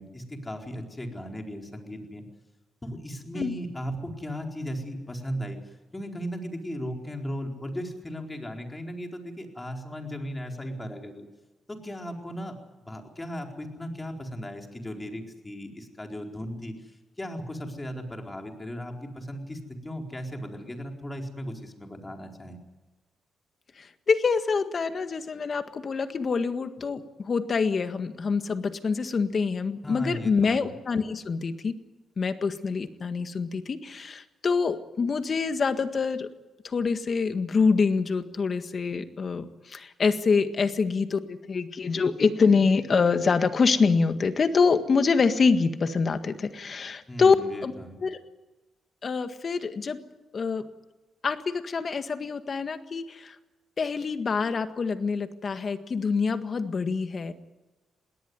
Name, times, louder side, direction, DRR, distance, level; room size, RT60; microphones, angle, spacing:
voice 1, 0.0-2.3 2.8-5.6 5.9-11.3 11.7-12.5 12.8-22.6 29.8-30.7 47.1-48.0, equal, 20° left, 2 dB, 4.3 m, -36 dB
voice 2, 23.8-31.8 32.2-36.3 36.6-47.3 47.6-47.7 48.0-48.2 49.0-50.0 50.3-50.7 51.2-53.3 53.8-57.3, left 5 dB, 50° left, 9 dB, 1.6 m, -25 dB
21.0 x 18.0 x 9.5 m, 1.1 s
cardioid pair, 80°, 0 cm